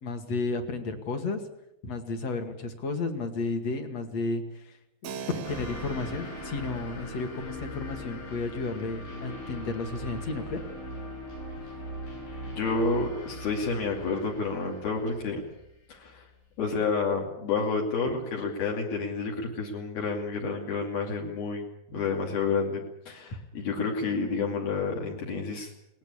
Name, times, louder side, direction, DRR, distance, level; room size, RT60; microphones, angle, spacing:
voice 1, 0.0-1.4 1.8-4.8 5.0-10.6, left 3 dB, 45° left, 7 dB, 2.8 m, -32 dB
Keyboard (musical), 5.0-13.4, right 7 dB, 75° right, 1.5 m, -46 dB
sound 1, 5.4-16.6, left 3 dB, 85° left, 7.7 m, -44 dB
sound 2, 9.1-14.2, right 1 dB, 45° right, 1.0 m, -40 dB
voice 2, 12.5-15.4 15.9-16.3 16.6-21.6 21.9-25.7, left 4 dB, 60° left, -1 dB, 4.5 m, -29 dB
21.5 x 19.5 x 8.7 m, 0.83 s
omnidirectional pair, 5.0 m